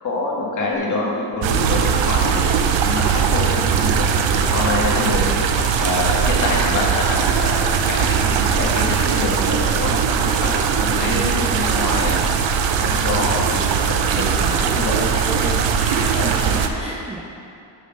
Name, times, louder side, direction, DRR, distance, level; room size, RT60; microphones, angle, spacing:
voice 1, 0.0-3.9 4.2-5.3 5.8-12.2 12.8-14.2 14.6-15.0 16.2-16.4, left 2 dB, 40° left, -4 dB, 1.7 m, -26 dB
sound 1, 0.7-0.9 1.3-1.5 1.9-2.0 2.5-2.7 3.1-3.3 3.8-3.9 4.4-4.5 5.0-5.1 5.6-5.7 6.2-6.3 6.8-6.9 7.4-7.5 8.0-8.2 8.6-8.7 9.2-9.3 9.8-9.9 10.4-10.6 11.0-11.1 11.6-11.7 12.2-12.3 12.9-13.0 13.5-13.6, left 3 dB, 20° left, 0.5 m, -35 dB
sound 2, 1.4-16.7, right 7 dB, 80° right, 0.7 m, -20 dB
voice 2, 14.4-15.6 15.8-17.2, right 1 dB, 15° right, -4 dB, 0.7 m, -30 dB
6.5 x 6.4 x 5.3 m, 2.5 s
cardioid pair, 135°, 44 cm